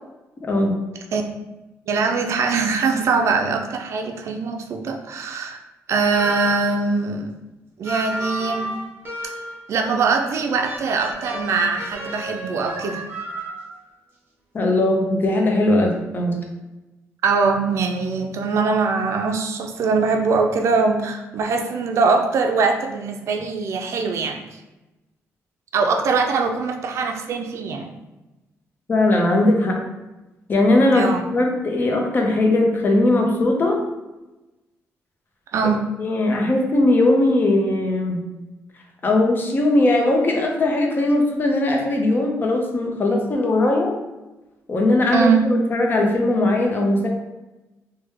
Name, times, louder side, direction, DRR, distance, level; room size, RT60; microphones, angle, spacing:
voice 1, 0.4-0.8 14.5-16.4 28.9-29.8 30.5-31.1 31.3-33.8 36.0-38.3 39.0-43.9 44.7-47.1, left 2 dB, 35° left, 1 dB, 0.6 m, -19 dB
voice 2, 1.9-5.6 5.9-7.3 7.8-8.7 9.7-13.0 17.2-24.6 25.7-27.9 30.9-31.2 35.5-35.8 45.1-45.4, right 4 dB, 60° right, 4 dB, 0.4 m, -22 dB
sound 1, 6.2-6.9 7.8-9.7 10.6-13.8, right 1 dB, 40° right, 0.9 m, -32 dB
3.1 x 2.2 x 3.1 m, 1.0 s
cardioid pair, 100°, 5 cm